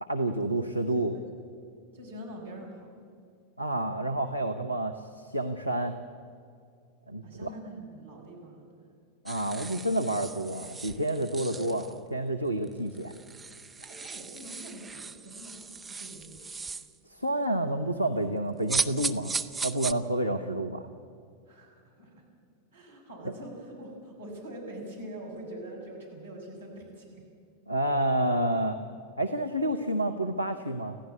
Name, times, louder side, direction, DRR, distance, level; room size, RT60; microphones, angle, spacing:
voice 1, 0.0-1.1 3.6-5.9 7.1-7.5 9.2-13.1 17.1-19.4 19.6-20.8 27.7-28.8 29.2-31.0, right 1 dB, 90° right, 7 dB, 1.0 m, -29 dB
voice 2, 1.9-3.0 7.2-8.9 13.8-16.4 21.5-22.2 22.7-27.2, right 1 dB, 75° right, -1 dB, 6.4 m, -44 dB
sound 1, 9.3-12.0 12.6-12.7 12.9-16.9 18.7-19.9, right 4 dB, 10° right, 0.8 m, -36 dB
26.5 x 16.0 x 8.4 m, 2.4 s
figure-of-eight pair, 90°, 0 cm